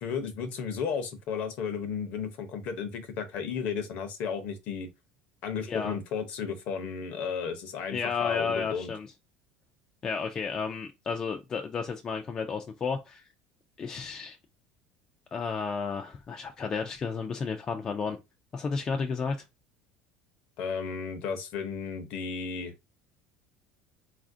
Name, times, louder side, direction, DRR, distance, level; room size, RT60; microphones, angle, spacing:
voice 1, 0.0-4.9 5.4-8.9 20.6-22.7, left 6 dB, 50° left, 0.7 m, -34 dB
voice 2, 7.9-9.1 10.0-13.2 13.8-14.4 15.3-18.2 18.5-19.4, left 5 dB, 20° left, 0.3 m, -32 dB
4.1 x 2.4 x 2.5 m
cardioid pair, 170°, 3 cm